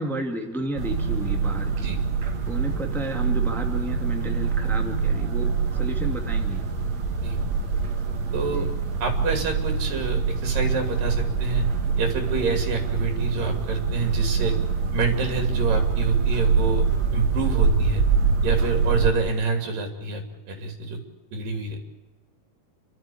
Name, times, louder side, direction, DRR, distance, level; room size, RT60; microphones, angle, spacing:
voice 1, 0.0-1.9 2.5-6.7 8.5-8.7, right 1 dB, ahead, 3 dB, 1.4 m, -32 dB
sound 1, 0.8-19.1, right 5 dB, 55° right, 3.0 m, -24 dB
voice 2, 8.3-8.7 9.0-11.7 12.0-14.6 14.9-16.9 17.1-18.0 18.4-21.0 21.3-21.8, right 4 dB, 85° right, 5 dB, 4.4 m, -27 dB
29.0 x 12.5 x 8.6 m, 1.1 s
omnidirectional pair, 3.8 m